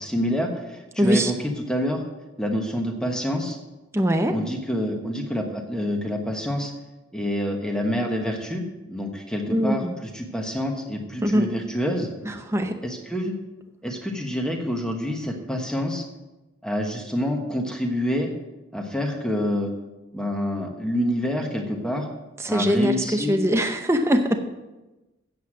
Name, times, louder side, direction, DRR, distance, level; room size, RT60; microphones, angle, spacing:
voice 1, 0.0-2.0 2.4-3.6 4.3-6.7 7.1-12.1 12.8-13.3 13.8-16.0 16.6-18.3 18.7-19.7 20.1-22.1 22.5-23.4, equal, 5° left, 2 dB, 1.2 m, -27 dB
voice 2, 1.0-1.3 3.9-4.3 9.5-9.9 11.2-11.5 12.3-12.8 22.4-24.4, equal, 15° right, 5 dB, 0.7 m, -22 dB
8.1 x 8.1 x 6.1 m, 1.1 s
head